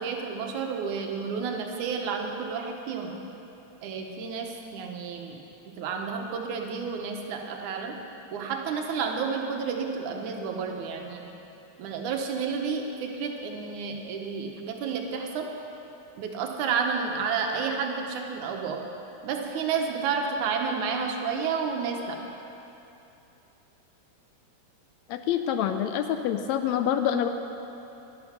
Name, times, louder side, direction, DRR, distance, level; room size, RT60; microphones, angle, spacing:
voice 1, 0.0-3.2 3.8-5.4 5.8-7.9 8.3-11.2 11.8-15.5 16.2-18.8 19.2-22.2, right 5 dB, 85° right, 2 dB, 2.5 m, -31 dB
voice 2, 25.1-27.3, left 9 dB, 80° left, 8 dB, 1.7 m, -26 dB
12.0 x 11.5 x 5.8 m, 2.9 s
omnidirectional pair, 3.4 m